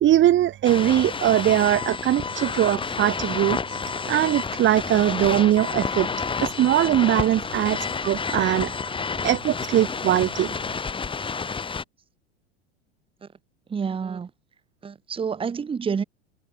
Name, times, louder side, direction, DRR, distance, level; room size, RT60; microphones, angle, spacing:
voice 1, 0.0-8.7 9.2-10.5, right 13 dB, 35° right, 1.1 m, -21 dB
sound 1, 0.6-11.8, left 5 dB, 15° left, 1.2 m, -30 dB
voice 2, 13.7-14.3 14.8-16.0, right 6 dB, 15° right, 0.9 m, -29 dB
hypercardioid pair, 105°, 34 cm